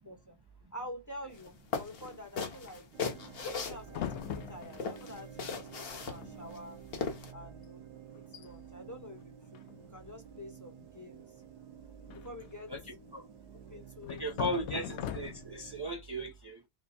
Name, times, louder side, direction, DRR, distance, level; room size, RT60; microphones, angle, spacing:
voice 1, 0.0-0.4 0.7-2.9 3.4-6.8 7.3-11.4 12.1-12.7 13.7-14.8, left 1 dB, 15° left, 0.9 m, -48 dB
sound 1, 1.3-1.5 1.7-4.4 4.7-7.3, left 5 dB, 60° left, 1.0 m, -38 dB
sound 2, 2.9-15.9, right 8 dB, 90° right, 0.9 m, -52 dB
sound 3, 3.9-5.1 5.9-6.0 6.2-6.6 6.9-7.1 7.6-7.7 8.1-8.5 9.5-10.1 12.1-13.1 14.0-15.7, left 9 dB, 85° left, 0.9 m, -41 dB
voice 2, 14.1-16.6, equal, 25° right, 0.6 m, -37 dB
3.7 x 2.1 x 4.1 m
omnidirectional pair, 1.1 m